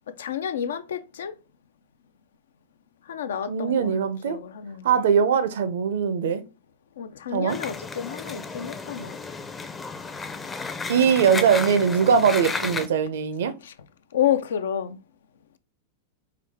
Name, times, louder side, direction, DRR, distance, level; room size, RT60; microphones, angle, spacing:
voice 1, 0.1-1.3 3.1-4.9 7.0-9.2 12.1-12.3 14.1-15.0, left 9 dB, 80° left, 0.4 m, -29 dB
voice 2, 3.4-4.4 4.8-6.4 7.3-7.6 10.9-13.5, right 7 dB, 75° right, 0.5 m, -21 dB
sound 1, 7.5-12.9, left 4 dB, 15° left, 0.5 m, -33 dB
4.6 x 2.3 x 3.5 m
hypercardioid pair, 115°, 0 cm